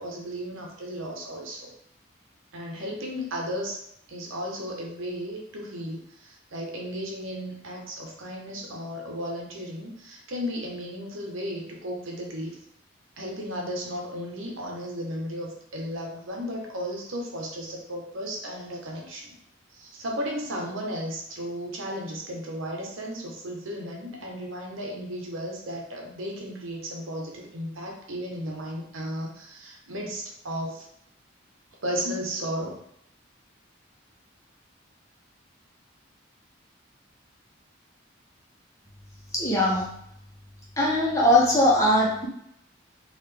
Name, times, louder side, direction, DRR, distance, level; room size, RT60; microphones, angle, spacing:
voice 1, 0.0-1.7 2.5-3.8 4.1-12.6 13.2-19.4 19.7-30.8 31.8-32.8, equal, 85° right, 0 dB, 1.0 m, -34 dB
voice 2, 39.3-39.9 40.8-42.3, left 1 dB, 15° left, -4 dB, 0.9 m, -20 dB
4.0 x 2.6 x 3.3 m, 0.71 s
head